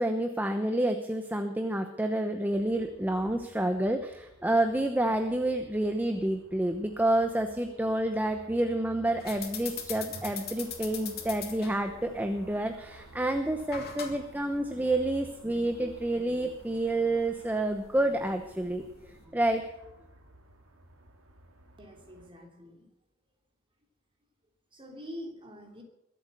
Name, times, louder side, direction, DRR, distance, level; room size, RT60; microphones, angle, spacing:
voice 1, 0.0-19.7, right 1 dB, 10° right, 6 dB, 0.9 m, -29 dB
sound 1, 2.5-22.3, right 1 dB, 75° right, 2.5 m, -55 dB
sound 2, 9.2-19.2, left 7 dB, 50° left, 2.7 m, -43 dB
voice 2, 21.8-22.9 24.7-25.8, equal, 25° right, 2 dB, 3.1 m, -45 dB
22.0 x 8.3 x 6.7 m, 0.87 s
head